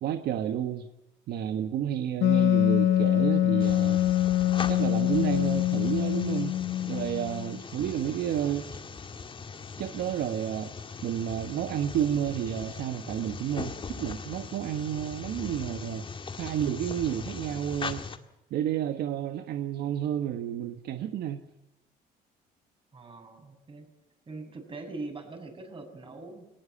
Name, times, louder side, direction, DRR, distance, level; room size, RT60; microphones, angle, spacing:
voice 1, 0.0-0.9 1.3-4.0 4.7-6.5 6.9-8.7 9.8-16.0 16.4-18.1 18.5-21.4, right 10 dB, 70° right, 1.4 m, -31 dB
Wind instrument woodwind instrument, 2.2-7.6, left 12 dB, 70° left, 0.9 m, -24 dB
sound 1, 3.6-18.2, left 5 dB, 30° left, 1.9 m, -40 dB
voice 2, 22.9-23.9 24.3-26.4, right 3 dB, 30° right, 6.5 m, -42 dB
19.0 x 19.0 x 8.5 m
cardioid pair, 110°, 17 cm